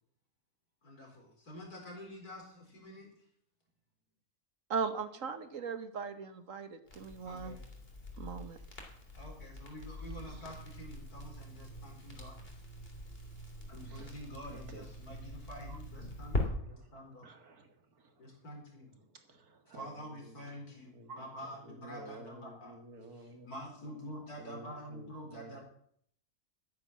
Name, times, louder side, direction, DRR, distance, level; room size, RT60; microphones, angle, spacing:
voice 1, 0.8-3.1 7.2-7.6 9.1-12.3 13.7-17.3 18.2-18.9 19.7-22.7 23.4-25.6, equal, 80° left, 1 dB, 4.8 m, -47 dB
voice 2, 4.7-7.6 8.2-8.6 15.7-15.8 21.1-21.2, right 6 dB, 60° right, 10 dB, 1.6 m, -38 dB
Crackle, 6.9-16.4, left 1 dB, 40° left, 3.1 m, -43 dB
voice 3, 13.6-15.2 16.3-18.4 18.9-20.7 20.9-23.5 24.4-25.6, right 2 dB, 75° right, 6 dB, 2.4 m, -54 dB
13.0 x 9.7 x 7.4 m, 0.65 s
omnidirectional pair, 1.6 m